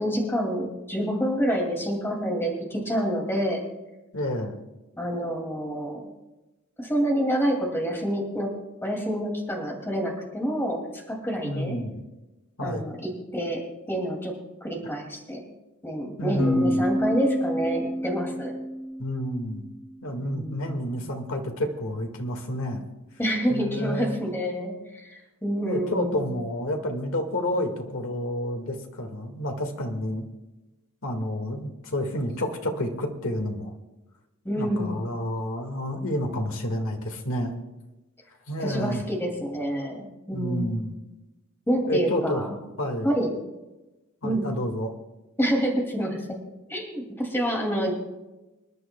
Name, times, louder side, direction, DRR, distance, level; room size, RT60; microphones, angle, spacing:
voice 1, 0.0-3.6 5.0-6.0 6.8-8.5 8.8-11.8 12.6-13.6 13.9-14.3 14.6-15.4 15.8-18.5 20.2-20.7 23.2-26.3 34.4-35.0 38.6-40.9 41.7-42.6 43.0-43.3 44.2-44.4 45.4-46.4 46.7-47.9, equal, 10° left, 0 dB, 2.4 m, -27 dB
voice 2, 4.1-4.6 11.4-12.0 12.6-12.8 16.2-16.8 19.0-19.6 20.0-22.8 23.5-24.2 25.6-30.3 31.0-33.7 34.5-37.6 38.5-39.0 40.3-40.9 41.9-42.4 42.8-43.1 44.2-44.9, equal, 65° left, 4 dB, 1.8 m, -29 dB
sound 1, 16.4-20.0, equal, 30° left, 1.2 m, -28 dB
27.0 x 11.0 x 2.2 m, 1.0 s
head